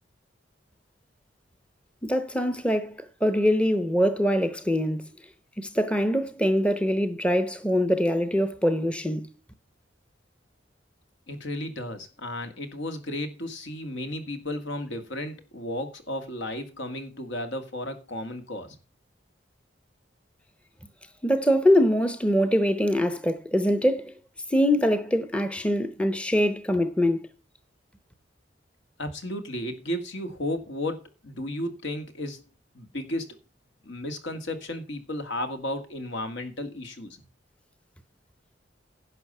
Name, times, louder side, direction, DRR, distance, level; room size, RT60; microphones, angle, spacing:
voice 1, 2.0-5.1 5.6-9.3 21.2-24.1 24.5-27.3, equal, 5° left, 0.7 m, -23 dB
voice 2, 11.3-18.8 29.0-32.4 32.7-33.4 33.8-37.2, left 1 dB, 75° left, 2.0 m, -34 dB
11.0 x 6.5 x 5.5 m
head